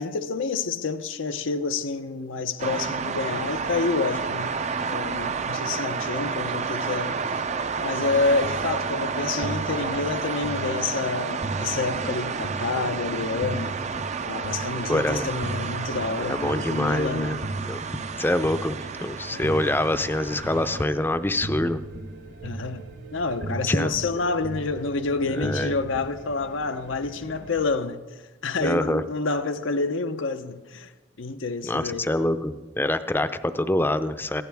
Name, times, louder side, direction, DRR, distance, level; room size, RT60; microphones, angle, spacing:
voice 1, 0.0-4.5 4.9-7.2 7.8-13.8 14.3-17.4 19.3-19.7 22.4-22.9 23.1-28.0 28.4-30.9 31.2-32.1, left 3 dB, 90° left, 0.7 m, -28 dB
sound 1, 2.6-20.9, right 5 dB, 35° right, 0.5 m, -30 dB
sound 2, 8.0-26.0, right 2 dB, 60° right, 1.3 m, -38 dB
sound 3, 11.5-27.7, right 1 dB, 90° right, 6.1 m, -50 dB
voice 2, 14.9-15.3 16.2-17.4 17.7-17.8 18.2-21.8 23.7-23.9 25.4-25.7 28.6-29.0 31.6-34.4, left 1 dB, 10° left, 0.5 m, -25 dB
21.0 x 15.5 x 3.5 m
head